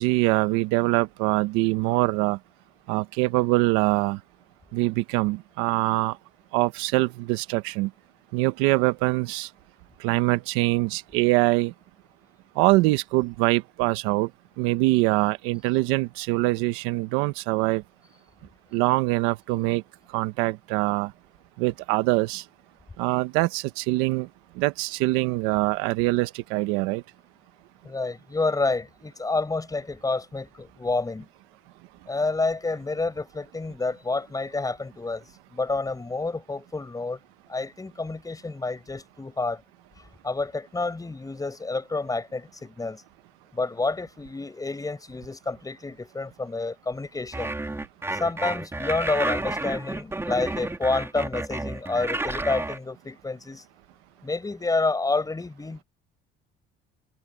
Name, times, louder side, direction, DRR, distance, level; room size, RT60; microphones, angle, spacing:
voice 1, 0.0-2.4 2.9-4.2 4.7-6.2 6.5-7.9 8.3-9.5 10.0-11.7 12.5-14.3 14.6-17.8 18.7-19.8 20.1-21.1 21.6-22.4 23.0-24.3 24.5-27.0, right 20 dB, 90° right, 1.1 m, -23 dB
voice 2, 27.8-31.3 32.1-35.2 35.5-37.2 37.5-39.6 40.2-43.0 43.5-47.6 48.2-53.6 54.2-55.8, left 3 dB, 15° left, 5.1 m, -29 dB
sound 1, 47.3-52.8, right 2 dB, 10° right, 3.3 m, -31 dB
supercardioid pair, 95°, 21 cm